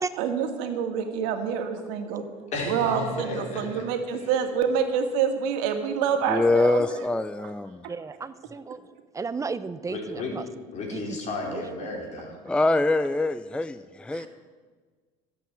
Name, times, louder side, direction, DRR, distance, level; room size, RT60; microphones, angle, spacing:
voice 1, 0.2-2.2 2.7-6.8, right 7 dB, 85° right, 5 dB, 2.0 m, -26 dB
voice 2, 2.5-3.8 4.2-4.3 9.9-10.3 10.7-12.4, left 2 dB, 50° left, 0 dB, 4.6 m, -33 dB
voice 3, 6.3-7.9 12.4-14.3, left 2 dB, 5° left, 13 dB, 0.4 m, -24 dB
voice 4, 7.9-8.8 9.1-10.4 10.9-11.0 11.5-11.6, right 4 dB, 20° right, 13 dB, 0.8 m, -33 dB
13.5 x 8.3 x 9.2 m, 1.5 s
supercardioid pair, 95°, 15 cm